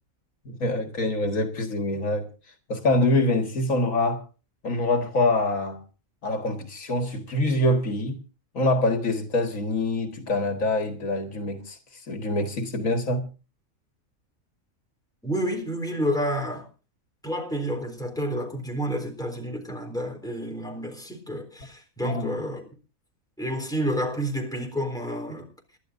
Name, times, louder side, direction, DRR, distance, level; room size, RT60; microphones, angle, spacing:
voice 1, 0.5-2.3 2.7-4.2 4.6-5.8 6.2-8.2 8.5-11.8 12.1-13.3 22.0-22.4, left 2 dB, 70° left, 2.0 m, -25 dB
voice 2, 15.2-16.7 17.2-22.7 23.4-25.5, equal, 5° left, 3.7 m, -30 dB
29.5 x 12.0 x 2.6 m
omnidirectional pair, 1.4 m